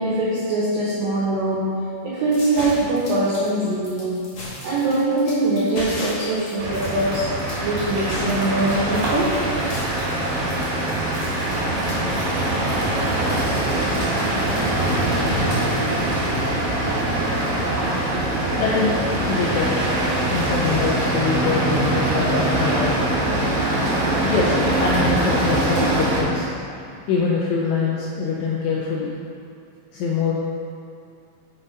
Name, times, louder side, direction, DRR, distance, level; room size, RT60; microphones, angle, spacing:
voice 1, 0.0-1.7 2.0-4.2 4.6-7.3 7.6-9.4, right 2 dB, 85° right, -8 dB, 2.0 m, -22 dB
sound 1, 2.3-13.5, left 1 dB, 55° left, 2.0 m, -36 dB
sound 2, 6.6-26.2, right 1 dB, 55° right, 3.3 m, -22 dB
voice 2, 18.5-19.8 20.3-23.3 23.8-24.0 24.3-26.5 27.1-29.1 29.9-30.3, left 4 dB, 85° left, -4 dB, 2.5 m, -24 dB
7.9 x 4.2 x 5.1 m, 2.4 s
omnidirectional pair, 5.7 m